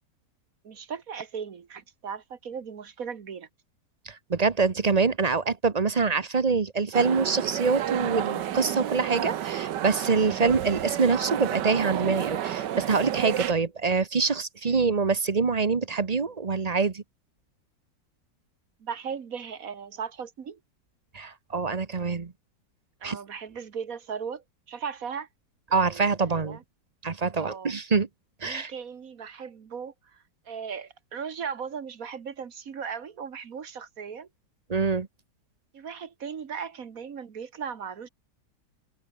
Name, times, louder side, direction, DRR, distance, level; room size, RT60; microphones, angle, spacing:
voice 1, 0.6-3.5 14.7-14.8 18.8-20.6 23.0-25.3 25.7-26.6 27.4-27.7 28.4-30.2 30.5-34.3 35.7-38.1, right 6 dB, 55° right, 1.7 m, -37 dB
voice 2, 4.1-17.0 21.1-22.3 23.0-23.2 25.7-26.6 27.0-28.1 28.4-28.7 34.7-35.1, right 4 dB, 30° right, 0.8 m, -25 dB
sound 1, 6.9-13.5, right 11 dB, 85° right, 1.6 m, -31 dB
omnidirectional pair, 1.8 m